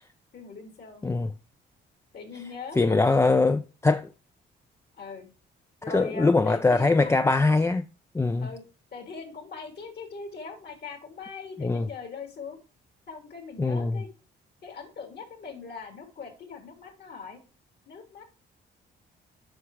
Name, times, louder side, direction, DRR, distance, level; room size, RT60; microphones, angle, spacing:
voice 1, 0.3-1.0 2.1-3.4 5.0-5.3 5.8-7.1 8.4-8.6 8.9-12.6 13.1-14.1 14.6-17.4 17.9-18.2, left 4 dB, 55° left, 3.3 m, -41 dB
voice 2, 1.0-1.3 2.8-4.1 5.9-7.9 8.1-8.5 11.6-11.9 13.6-14.0, left 3 dB, 15° left, 0.4 m, -22 dB
7.9 x 5.9 x 4.9 m
cardioid pair, 90°, 20 cm